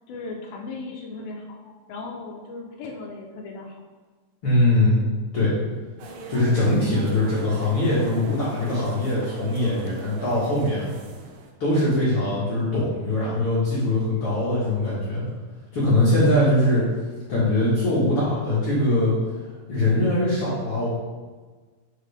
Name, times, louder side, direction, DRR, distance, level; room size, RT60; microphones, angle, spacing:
voice 1, 0.1-3.8, left 3 dB, 80° left, 0 dB, 2.2 m, -37 dB
voice 2, 4.4-5.0 5.3-5.5 6.3-10.9 11.6-15.2 15.7-16.9 17.3-19.1 19.7-20.9, left 1 dB, 50° left, -9 dB, 1.7 m, -22 dB
sound 1, 6.0-11.5, right 4 dB, 75° right, 2.3 m, -41 dB
7.5 x 5.6 x 3.5 m, 1.4 s
omnidirectional pair, 4.8 m